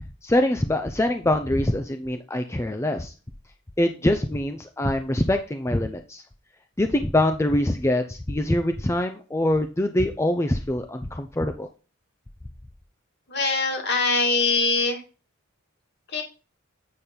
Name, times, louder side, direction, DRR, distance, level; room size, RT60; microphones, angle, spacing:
voice 1, 0.2-3.1 3.8-6.2 6.8-11.7, left 1 dB, 15° left, 6 dB, 0.5 m, -24 dB
voice 2, 13.3-15.0 16.1-16.2, left 3 dB, 55° left, 3 dB, 2.0 m, -22 dB
8.5 x 5.2 x 4.4 m, 0.34 s
head